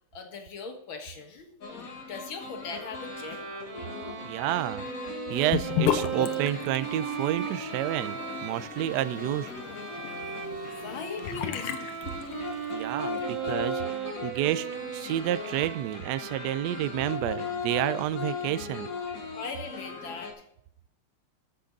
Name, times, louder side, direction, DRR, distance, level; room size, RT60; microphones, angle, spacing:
voice 1, 0.1-3.5 10.8-11.7 19.3-20.4, left 4 dB, 65° left, 5 dB, 2.3 m, -39 dB
sound 1, 1.6-20.3, left 5 dB, 45° left, 1.7 m, -39 dB
Bowed string instrument, 2.7-17.4, right 8 dB, 60° right, 2.3 m, -38 dB
voice 2, 4.2-4.8 5.3-9.5 12.7-13.8 14.2-14.7 14.9-18.9, right 13 dB, 80° right, 15 dB, 0.9 m, -30 dB
Sink (filling or washing) / Bathtub (filling or washing), 5.5-12.8, left 10 dB, 85° left, 1.7 m, -34 dB
13.0 x 6.3 x 3.9 m, 0.74 s
omnidirectional pair, 2.4 m